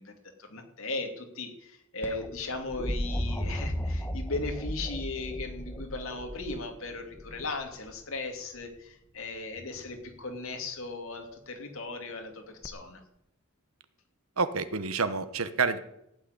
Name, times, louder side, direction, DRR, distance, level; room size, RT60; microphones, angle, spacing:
voice 1, 0.0-13.0, left 3 dB, 65° left, 4 dB, 2.7 m, -37 dB
sound 1, 2.0-8.0 9.6-10.1 12.6-12.7, equal, 10° left, 1.1 m, -35 dB
voice 2, 14.4-15.8, right 4 dB, 75° right, 12 dB, 1.1 m, -28 dB
15.0 x 6.6 x 9.7 m, 0.80 s
head